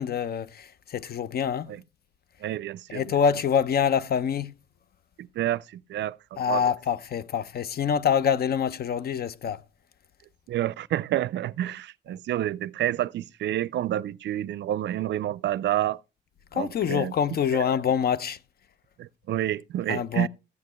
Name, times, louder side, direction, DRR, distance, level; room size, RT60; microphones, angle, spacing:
voice 1, 0.0-1.8 2.9-4.5 6.4-9.6 16.5-18.4 19.9-20.3, left 7 dB, 50° left, 0.6 m, -26 dB
voice 2, 2.4-3.2 5.2-5.6 5.9-6.6 10.5-16.0 16.5-17.1 17.5-17.7 19.0-20.3, right 13 dB, 65° right, 0.4 m, -29 dB
14.5 x 8.3 x 3.1 m
cardioid pair, 90°, 20 cm